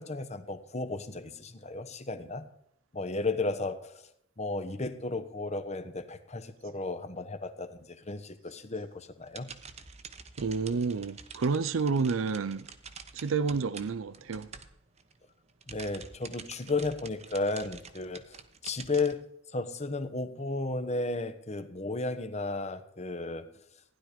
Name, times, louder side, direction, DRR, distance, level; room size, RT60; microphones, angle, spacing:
voice 1, 0.0-2.4 2.9-4.0 4.4-9.5 15.7-19.2 19.5-23.5, left 3 dB, 35° left, 1.1 m, -34 dB
sound 1, 9.2-15.2 15.5-19.1, right 6 dB, 35° right, 1.0 m, -48 dB
voice 2, 10.4-12.6 13.1-14.5, right 4 dB, 80° right, 0.5 m, -29 dB
15.5 x 11.0 x 5.1 m
head